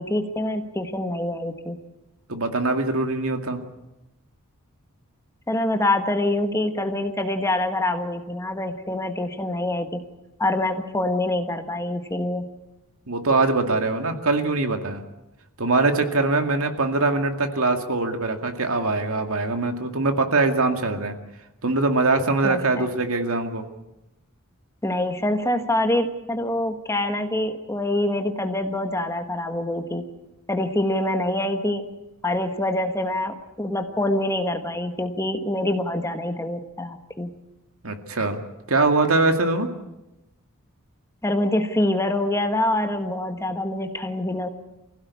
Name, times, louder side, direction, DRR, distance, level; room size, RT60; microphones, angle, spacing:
voice 1, 0.0-1.8 5.5-10.0 10.4-12.5 22.4-22.9 24.8-30.0 30.5-31.9 32.2-37.3 41.2-44.5, left 1 dB, 15° left, 6 dB, 1.4 m, -25 dB
voice 2, 2.3-3.6 13.1-15.0 15.6-21.2 21.6-23.6 37.8-38.4 38.7-39.7, right 3 dB, 70° right, 5 dB, 2.2 m, -22 dB
25.0 x 16.0 x 8.5 m, 0.98 s
head